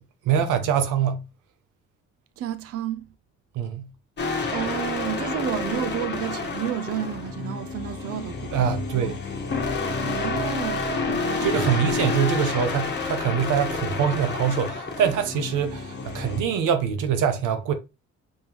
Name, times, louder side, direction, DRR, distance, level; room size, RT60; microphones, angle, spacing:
voice 1, 0.3-1.2 3.6-3.9 8.5-9.2 11.4-17.7, right 8 dB, 85° right, 0.8 m, -24 dB
voice 2, 2.4-3.1 4.5-11.5, right 10 dB, 50° right, 0.5 m, -32 dB
sound 1, 4.2-16.4, left 4 dB, 35° left, 1.1 m, -29 dB
5.3 x 3.5 x 2.9 m
cardioid pair, 90°, 30 cm